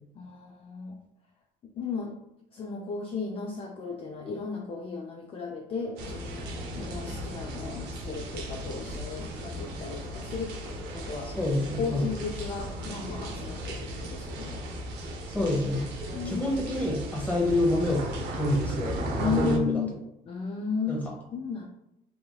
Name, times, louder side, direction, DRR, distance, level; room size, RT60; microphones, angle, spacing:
voice 1, 0.2-1.0 1.6-2.1 2.5-6.5 6.7-11.3 11.8-14.6 16.1-16.5 19.2-19.9 20.3-21.6, left 5 dB, 35° left, 1 dB, 0.4 m, -34 dB
sound 1, 6.0-19.6, right 1 dB, 80° right, 0.6 m, -36 dB
voice 2, 11.2-12.1 15.3-15.8 16.2-18.1 18.4-18.9 19.2-19.8 20.9-21.0, left 1 dB, 10° left, -2 dB, 0.9 m, -27 dB
3.1 x 2.6 x 2.3 m, 0.84 s
cardioid pair, 110°, 17 cm